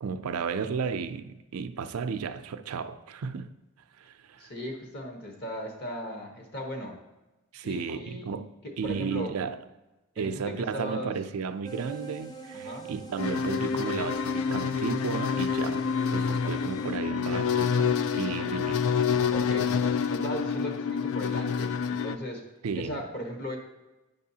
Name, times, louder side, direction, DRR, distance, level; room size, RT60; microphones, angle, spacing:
voice 1, 0.0-3.5 4.0-4.5 7.5-8.5 8.8-9.6 10.2-18.8 22.6-23.0, right 5 dB, 90° right, 0.4 m, -33 dB
voice 2, 4.4-7.0 7.6-8.3 8.6-9.3 10.2-11.1 12.5-12.9 16.4-16.5 18.4-18.5 19.3-19.8 20.1-22.5 22.7-23.6, equal, 45° left, 1.2 m, -37 dB
sound 1, 11.6-17.0, right 6 dB, 20° left, 0.5 m, -44 dB
sound 2, 13.2-22.2, left 6 dB, 75° left, 0.3 m, -27 dB
9.3 x 5.4 x 2.8 m
head